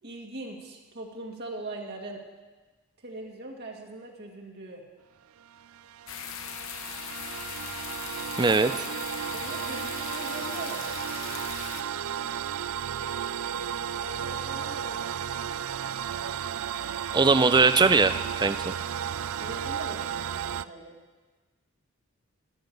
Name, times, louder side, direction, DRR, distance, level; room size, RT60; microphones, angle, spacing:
voice 1, 0.0-2.2 3.0-4.8 8.5-8.7 9.3-10.9 14.0-15.4 19.4-21.0, right 2 dB, 50° right, 0 dB, 2.0 m, -41 dB
sound 1, 5.4-20.6, right 8 dB, 80° right, 0.4 m, -34 dB
sound 2, 6.1-11.8, left 8 dB, 70° left, 0.8 m, -39 dB
voice 2, 8.4-8.7 17.1-18.7, right 4 dB, 20° right, 12 dB, 0.4 m, -21 dB
12.5 x 12.0 x 6.9 m, 1.3 s
head